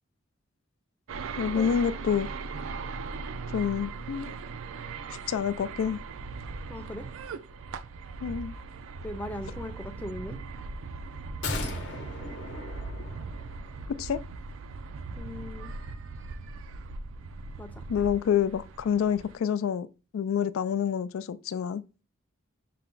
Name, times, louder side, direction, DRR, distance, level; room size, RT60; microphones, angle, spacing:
sound 1, 1.1-19.4, right 4 dB, 85° right, 0.4 m, -39 dB
voice 1, 1.4-2.3 3.5-4.3 5.3-6.0 8.2-8.5 14.0-14.2 17.9-19.9 20.1-21.8, left 8 dB, 85° left, 0.3 m, -27 dB
voice 2, 6.7-7.1 9.0-10.4 15.2-15.7 17.6-17.8, left 1 dB, 10° left, 0.4 m, -39 dB
sound 2, 11.4-13.8 14.1-14.2, left 2 dB, 60° left, 0.8 m, -37 dB
5.7 x 2.1 x 3.7 m
head